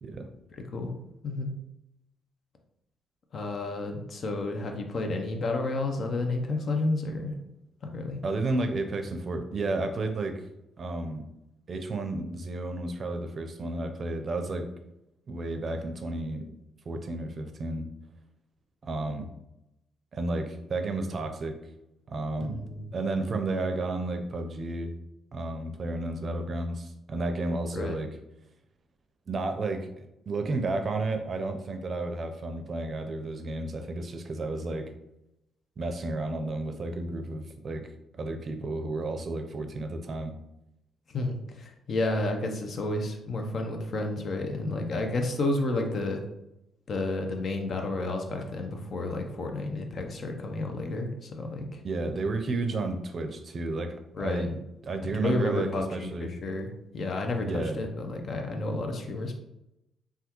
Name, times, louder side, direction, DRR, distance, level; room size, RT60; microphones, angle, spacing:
voice 1, 0.5-0.9 1.2-1.5 3.3-7.4 7.8-8.2 22.4-22.9 27.7-28.0 41.1-46.2 46.9-51.8 54.1-54.5 55.1-59.4, left 2 dB, 55° left, 4 dB, 0.6 m, -31 dB
voice 2, 8.2-10.4 10.8-11.2 11.7-14.7 15.3-16.5 16.9-17.9 18.8-19.3 20.1-21.6 22.1-22.6 22.9-24.9 25.3-28.1 29.3-34.9 35.8-37.9 38.1-40.3 51.8-54.5 54.8-56.3 57.4-57.8, right 2 dB, 45° right, 6 dB, 0.5 m, -32 dB
3.4 x 2.3 x 2.9 m, 0.87 s
cardioid pair, 80°, 0 cm